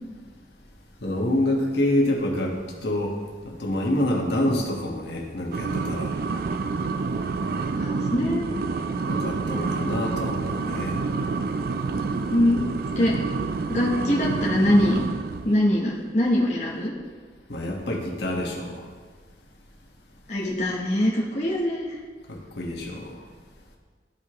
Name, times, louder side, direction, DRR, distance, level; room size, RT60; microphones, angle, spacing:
voice 1, 1.0-3.2 3.4-6.2 9.0-11.0 17.5-18.8 22.3-23.2, left 1 dB, 70° left, -1 dB, 1.3 m, -27 dB
sound 1, 5.5-15.6, right 4 dB, 55° right, 0.3 m, -28 dB
voice 2, 7.7-8.5 12.3-12.6 13.0-13.1 13.7-15.0 15.4-16.9 20.3-22.0, left 1 dB, 40° left, -3 dB, 0.8 m, -23 dB
13.0 x 4.8 x 3.0 m, 1.5 s
head